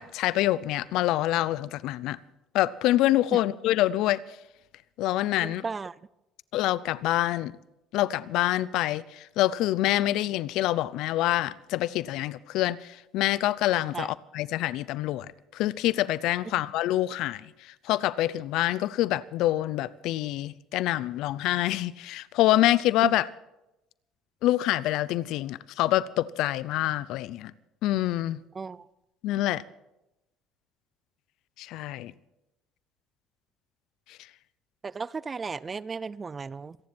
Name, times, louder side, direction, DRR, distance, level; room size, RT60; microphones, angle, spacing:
voice 1, 0.0-2.2 2.5-4.2 5.0-5.6 6.5-7.5 7.9-23.3 24.4-27.5 27.8-28.4 29.2-29.6 31.6-32.1 34.1-34.2, left 15 dB, 70° left, 0.6 m, -26 dB
voice 2, 5.4-5.9 13.9-14.1 23.0-23.1 28.5-28.9 34.8-36.8, right 4 dB, 25° right, 0.5 m, -34 dB
27.0 x 10.5 x 4.4 m
supercardioid pair, 100°, 0 cm